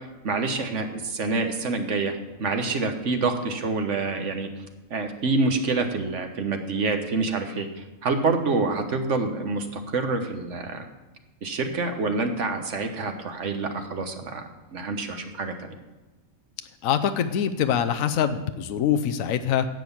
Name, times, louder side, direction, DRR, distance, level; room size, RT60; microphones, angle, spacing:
voice 1, 0.2-4.5 4.9-7.7 8.0-10.8 11.4-15.7, right 3 dB, 60° right, 6 dB, 1.4 m, -27 dB
voice 2, 16.8-19.7, left 8 dB, 75° left, 8 dB, 1.1 m, -24 dB
11.0 x 7.8 x 7.2 m, 1.1 s
omnidirectional pair, 1.4 m